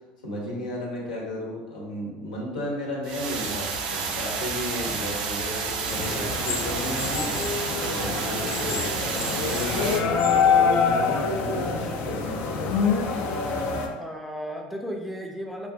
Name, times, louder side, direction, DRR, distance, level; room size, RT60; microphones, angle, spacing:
voice 1, 0.2-10.2 10.6-12.7, left 1 dB, 90° left, -3 dB, 0.8 m, -33 dB
sound 1, 3.0-10.0, right 5 dB, 80° right, 0.4 m, -30 dB
voice 2, 4.7-5.2 8.3-8.8 11.6-12.2 14.0-15.7, equal, ahead, 1 dB, 0.4 m, -36 dB
sound 2, 5.9-13.9, left 5 dB, 65° left, 0.4 m, -25 dB
2.5 x 2.4 x 3.2 m, 1.2 s
hypercardioid pair, 80°, 4 cm